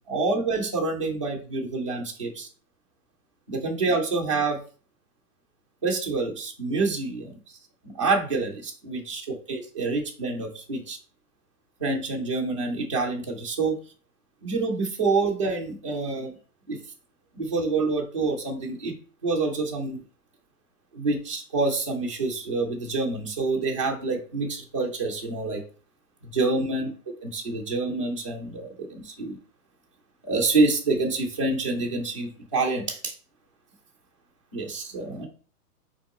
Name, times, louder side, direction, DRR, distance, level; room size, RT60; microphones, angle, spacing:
voice 1, 0.0-2.5 3.5-4.6 5.8-7.4 7.8-11.0 11.8-13.8 14.4-16.4 16.7-16.8 17.3-18.9 19.2-20.0 20.9-25.6 26.2-26.9 27.2-29.4 30.2-33.1 34.5-35.3, right 3 dB, 25° right, -3 dB, 0.3 m, -27 dB
3.9 x 2.9 x 4.0 m, 0.39 s
hypercardioid pair, 170°, 45 cm